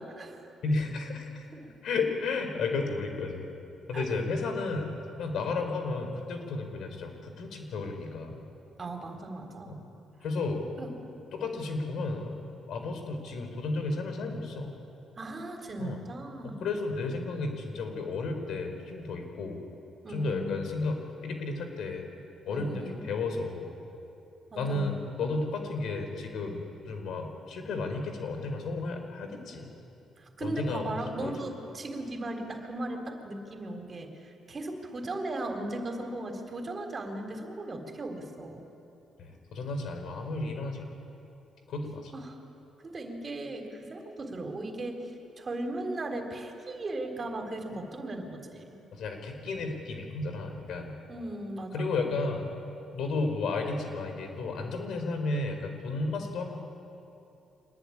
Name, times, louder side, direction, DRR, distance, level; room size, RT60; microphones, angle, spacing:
voice 1, 0.0-0.5 1.5-1.7 3.9-4.1 8.8-9.8 10.8-10.9 15.2-16.6 20.0-20.6 22.5-23.0 24.5-24.9 30.2-38.7 42.1-42.4 42.8-45.0 45.4-48.8 51.1-52.1, right 2 dB, 35° right, 5 dB, 3.7 m, -37 dB
voice 2, 0.6-1.5 1.8-3.5 3.9-4.9 5.2-8.4 9.7-9.8 10.2-10.7 11.3-12.3 12.6-14.7 15.8-16.0 16.4-19.6 20.1-22.0 22.5-23.7 24.6-29.7 30.4-31.3 39.2-40.9 41.7-42.1 48.9-50.9 51.7-52.6 52.9-56.5, left 3 dB, 70° left, 5 dB, 4.5 m, -33 dB
25.0 x 20.0 x 9.9 m, 2.9 s
cardioid pair, 90°, 0 cm